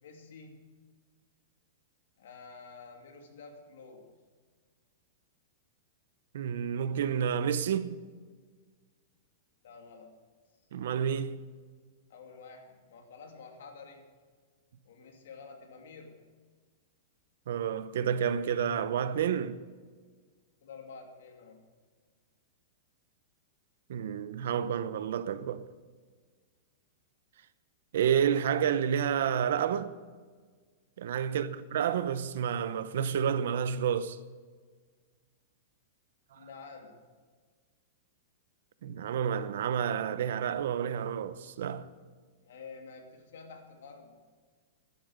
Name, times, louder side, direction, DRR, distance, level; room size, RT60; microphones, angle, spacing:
voice 1, 0.0-0.7 2.2-4.1 9.6-10.1 12.1-14.1 14.8-16.2 20.6-21.6 31.3-31.5 36.3-37.1 42.4-44.2, left 4 dB, 75° left, 2.7 m, -49 dB
voice 2, 6.3-8.0 10.7-11.4 17.5-19.6 23.9-25.6 27.9-29.9 31.0-34.2 38.8-41.9, right 8 dB, 70° right, 0.8 m, -30 dB
11.0 x 10.5 x 6.5 m
supercardioid pair, 155°, 0 cm